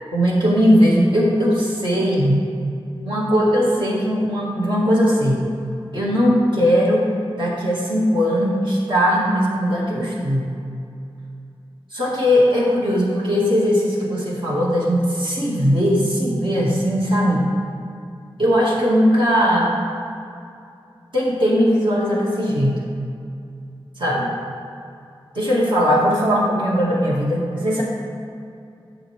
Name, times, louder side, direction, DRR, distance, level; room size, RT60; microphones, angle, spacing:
voice 1, 0.1-2.4 3.1-5.4 5.9-7.1 7.4-10.5 11.9-17.4 18.4-19.7 21.1-22.8 24.0-24.3 25.3-27.8, equal, 60° right, -5 dB, 2.4 m, -19 dB
11.5 x 7.4 x 3.7 m, 2.5 s
wide cardioid pair, 90°, 9 cm